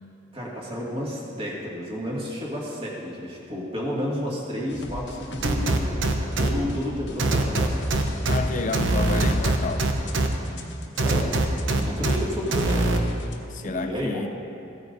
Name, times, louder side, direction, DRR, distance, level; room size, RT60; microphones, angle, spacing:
voice 1, 0.3-6.0 6.4-7.8 11.0-11.4 11.7-13.0 13.6-14.3, equal, 30° right, -5 dB, 2.1 m, -31 dB
sound 1, 4.7-13.4, left 1 dB, 70° left, 0.9 m, -38 dB
sound 2, 5.4-6.5 7.2-8.4 8.7-10.3 11.0-12.2 12.5-13.0, right 2 dB, 90° right, 0.8 m, -22 dB
voice 2, 8.3-9.9 13.5-14.3, left 3 dB, 45° left, 8 dB, 0.6 m, -30 dB
16.0 x 9.1 x 2.7 m, 2.5 s
head